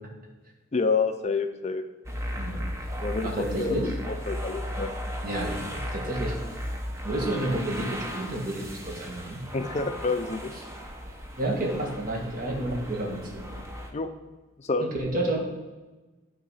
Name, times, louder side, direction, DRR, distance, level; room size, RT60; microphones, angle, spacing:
voice 1, 0.7-1.8 3.0-3.3 3.6-3.8 4.1-4.9 9.5-10.5 13.9-14.1 14.6-14.9, left 4 dB, 35° left, 8 dB, 0.4 m, -28 dB
sound 1, 2.0-13.9, equal, 15° right, 0.7 m, -36 dB
voice 2, 2.3-2.7 3.2-3.9 5.2-6.4 7.0-9.4 11.4-13.5 14.8-15.5, right 1 dB, 40° right, -1 dB, 1.6 m, -30 dB
9.2 x 4.0 x 5.4 m, 1.2 s
head